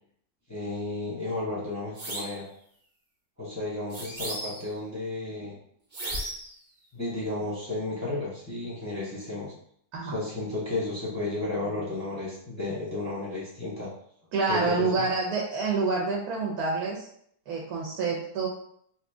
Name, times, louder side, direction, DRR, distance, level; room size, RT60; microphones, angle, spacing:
voice 1, 0.5-2.5 3.4-5.6 6.9-9.5 10.0-13.9 14.5-15.1, left 2 dB, 15° left, -7 dB, 0.6 m, -33 dB
sound 1, 2.0-2.4 3.9-4.7 5.9-6.5, right 1 dB, 45° right, 0.9 m, -35 dB
voice 2, 14.3-17.1 17.5-18.5, right 4 dB, 75° right, -2 dB, 1.2 m, -27 dB
3.0 x 2.7 x 3.4 m, 0.66 s
omnidirectional pair, 1.7 m